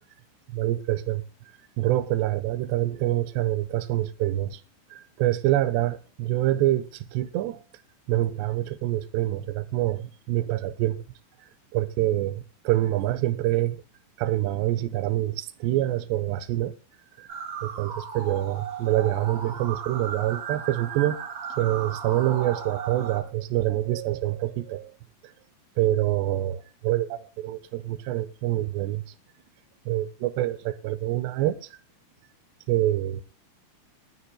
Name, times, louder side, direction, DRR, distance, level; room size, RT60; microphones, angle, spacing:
voice 1, 0.5-1.2 1.8-4.6 4.9-7.6 8.1-11.0 11.7-13.8 14.2-16.8 17.2-17.3 17.6-21.2 21.6-25.0 25.8-29.0 29.9-31.8 32.7-33.2, right 14 dB, 75° right, 2.8 m, -26 dB
sound 1, 17.3-23.2, right 6 dB, 55° right, 1.6 m, -36 dB
21.0 x 13.0 x 2.3 m
omnidirectional pair, 5.4 m